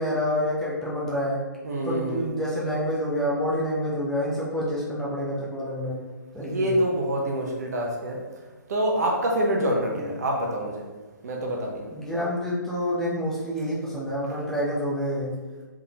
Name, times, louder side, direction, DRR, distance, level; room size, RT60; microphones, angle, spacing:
voice 1, 0.0-1.4 1.8-6.0 6.3-6.8 9.9-10.1 11.9-15.3, equal, 5° left, -7 dB, 0.6 m, -28 dB
voice 2, 1.6-2.3 6.4-8.2 8.7-10.8 11.2-11.9, right 1 dB, 55° right, 0 dB, 0.8 m, -26 dB
3.5 x 3.5 x 2.9 m, 1.3 s
figure-of-eight pair, 135°, 11 cm